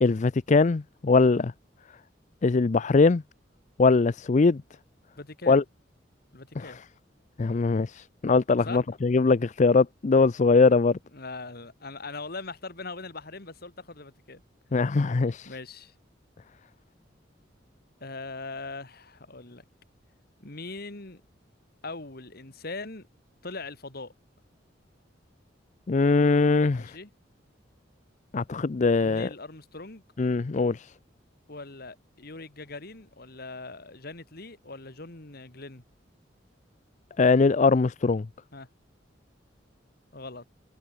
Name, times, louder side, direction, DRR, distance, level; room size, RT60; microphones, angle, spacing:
voice 1, 0.0-1.5 2.4-3.2 3.8-4.6 5.5-5.6 6.6-6.7 7.4-11.0 14.7-15.5 25.9-27.0 28.3-29.3 30.2-30.9 37.2-38.3, left 4 dB, 40° left, 0.5 m, -21 dB
voice 2, 5.2-5.6 6.3-6.8 8.6-8.8 11.1-14.4 15.4-15.9 18.0-19.6 20.4-21.2 21.8-23.1 23.4-24.1 26.7-27.1 29.0-30.0 31.5-35.8 38.5-38.7 40.1-40.4, left 3 dB, 55° left, 2.5 m, -41 dB
head